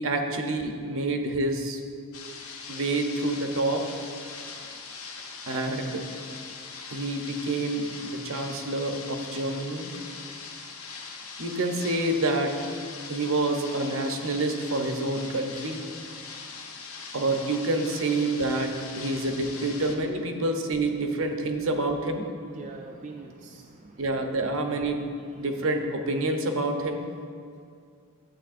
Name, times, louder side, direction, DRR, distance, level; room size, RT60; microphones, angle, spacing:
voice 1, 0.0-1.8 2.7-3.8 5.5-6.0 6.9-9.9 11.4-12.5 13.1-15.8 17.1-22.2 24.0-25.1 25.4-27.1, right 2 dB, 65° right, 4 dB, 0.7 m, -28 dB
sound 1, 2.1-20.0, left 4 dB, 75° left, 0.8 m, -41 dB
voice 2, 22.2-24.3 25.2-25.5, right 3 dB, 35° right, 1 dB, 0.4 m, -45 dB
11.5 x 7.7 x 2.5 m, 2.3 s
head